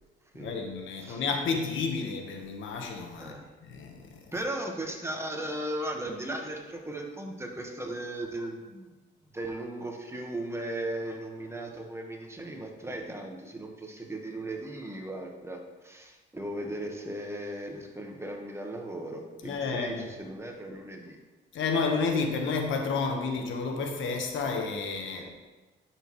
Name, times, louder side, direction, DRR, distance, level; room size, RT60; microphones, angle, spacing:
voice 1, 0.4-3.3 3.7-3.9 19.4-20.0 21.5-25.2, left 4 dB, 75° left, 3 dB, 1.3 m, -30 dB
voice 2, 4.3-8.9 9.3-21.2 25.1-25.3, right 1 dB, 15° right, 2 dB, 1.3 m, -37 dB
11.5 x 6.3 x 3.1 m, 1.2 s
cardioid pair, 90°, 20 cm